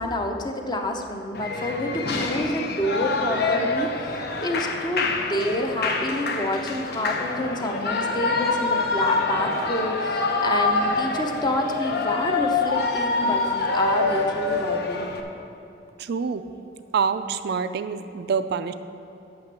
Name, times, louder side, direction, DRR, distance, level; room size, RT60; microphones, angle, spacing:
voice 1, 0.0-3.9 4.4-15.1, left 1 dB, 25° left, 3 dB, 0.7 m, -28 dB
Shout / Cheering, 1.3-15.2, left 3 dB, 60° left, 0.8 m, -26 dB
voice 2, 16.0-16.4 16.9-18.7, right 6 dB, 60° right, 10 dB, 0.4 m, -26 dB
8.7 x 6.0 x 6.9 m, 2.7 s
head